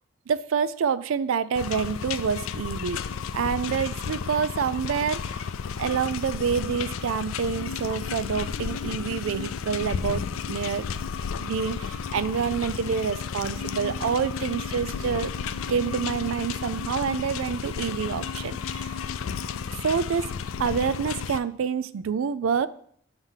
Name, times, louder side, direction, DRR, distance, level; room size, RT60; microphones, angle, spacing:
voice 1, 0.3-3.0 3.3-5.4 5.8-10.9 11.4-15.3 15.7-19.0 19.8-20.3 20.6-22.7, right 6 dB, 80° right, 16 dB, 0.4 m, -27 dB
sound 1, 1.6-21.4, left 6 dB, 80° left, 0.4 m, -32 dB
7.2 x 3.5 x 5.5 m, 0.62 s
head